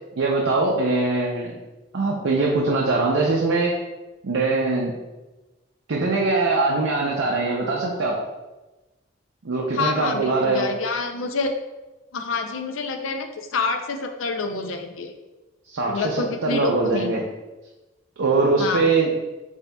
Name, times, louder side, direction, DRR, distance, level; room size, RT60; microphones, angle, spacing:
voice 1, 0.2-1.6 1.9-3.8 4.2-5.0 5.9-8.2 9.4-10.7 15.7-17.2 18.2-19.1, right 3 dB, 75° right, -2 dB, 0.6 m, -22 dB
voice 2, 9.7-11.5 12.1-15.1 15.9-17.1 18.6-18.9, left 4 dB, 85° left, 6 dB, 0.5 m, -27 dB
8.0 x 2.7 x 2.3 m, 1.1 s
head